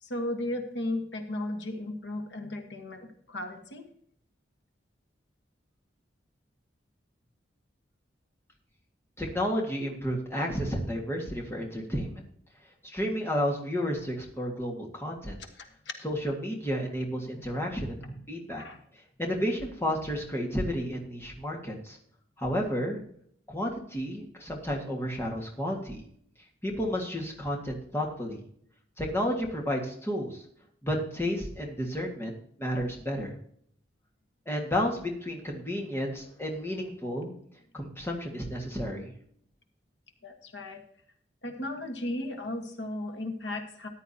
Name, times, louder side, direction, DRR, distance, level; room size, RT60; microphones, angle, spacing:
voice 1, 0.0-3.8 11.5-11.7 15.4-15.7 17.3-17.7 17.9-18.2 18.6-18.8 40.2-40.8 41.4-43.9, left 1 dB, 75° left, 5 dB, 1.4 m, -36 dB
voice 2, 9.2-12.2 12.9-15.4 16.0-18.6 19.2-22.0 22.4-23.0 23.5-26.0 26.6-28.4 29.0-30.4 30.8-33.3 34.5-37.3 37.7-39.1, equal, 15° left, 0 dB, 1.7 m, -31 dB
14.0 x 10.0 x 2.8 m, 0.64 s
head